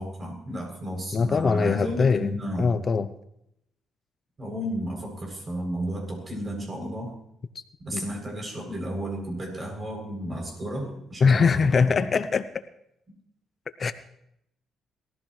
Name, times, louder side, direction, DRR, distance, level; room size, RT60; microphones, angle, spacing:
voice 1, 0.0-2.7 4.4-7.1 7.8-11.5, equal, 35° right, 0 dB, 7.7 m, -33 dB
voice 2, 1.1-3.1 7.5-7.6 7.9-8.0 11.2-12.6 13.8-13.9, left 5 dB, 45° left, 12 dB, 0.7 m, -22 dB
21.5 x 15.0 x 3.3 m, 0.77 s
cardioid pair, 90°, 0 cm